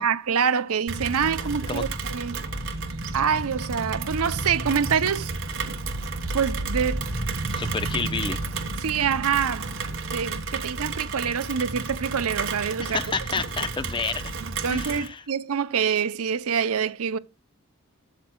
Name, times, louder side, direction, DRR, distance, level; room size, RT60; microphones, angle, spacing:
voice 1, 0.0-2.4 3.1-5.3 5.7-5.8 6.3-7.1 8.8-9.8 10.1-13.0 14.6-17.2, right 7 dB, 85° right, 0.6 m, -26 dB
Rain, 0.9-15.1, right 3 dB, 60° right, 1.2 m, -31 dB
voice 2, 7.5-8.4 12.8-14.3 14.6-15.2, left 4 dB, 20° left, 0.6 m, -30 dB
12.5 x 7.6 x 2.3 m
head